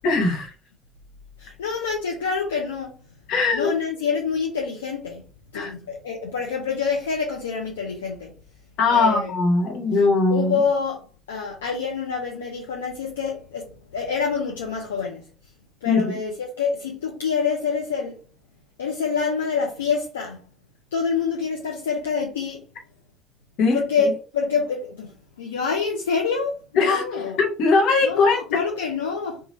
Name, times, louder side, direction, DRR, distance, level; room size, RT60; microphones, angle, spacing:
voice 1, 0.0-0.5 3.3-3.7 5.5-5.7 8.8-10.6 15.9-16.2 23.6-23.8 26.8-28.6, left 3 dB, 60° left, 0.9 m, -20 dB
voice 2, 1.4-2.9 3.5-5.2 5.5-8.3 8.9-9.3 10.3-11.0 11.3-15.2 15.8-18.2 18.8-20.4 20.9-22.6 23.7-27.4 28.0-29.4, left 5 dB, 80° left, 0.5 m, -26 dB
2.9 x 2.3 x 4.0 m
figure-of-eight pair, 50°, 0 cm